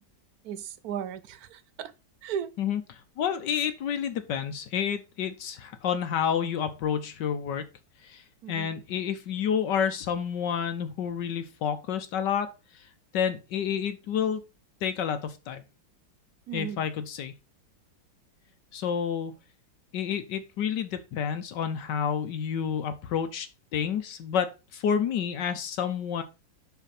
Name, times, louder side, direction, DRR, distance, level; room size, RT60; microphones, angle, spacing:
voice 1, 0.4-1.9 2.2-2.5 8.4-8.7 16.5-16.8, right 8 dB, 70° right, 0.9 m, -36 dB
voice 2, 2.6-7.6 8.0-8.2 8.5-12.5 13.1-14.4 14.8-15.6 16.5-17.3 18.7-19.3 19.9-23.5 23.7-26.2, left 8 dB, 70° left, 1.4 m, -29 dB
5.9 x 5.8 x 4.2 m
omnidirectional pair, 2.0 m